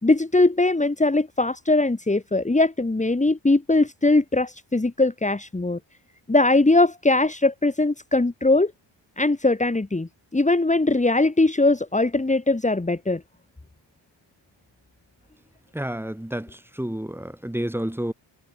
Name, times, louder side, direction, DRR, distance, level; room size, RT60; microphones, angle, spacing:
voice 1, 0.0-5.8 6.3-8.7 9.2-13.2, left 2 dB, 15° left, 4.3 m, -21 dB
voice 2, 15.7-16.5 16.8-18.1, right 1 dB, 5° right, 6.3 m, -29 dB
cardioid pair, 115°, 46 cm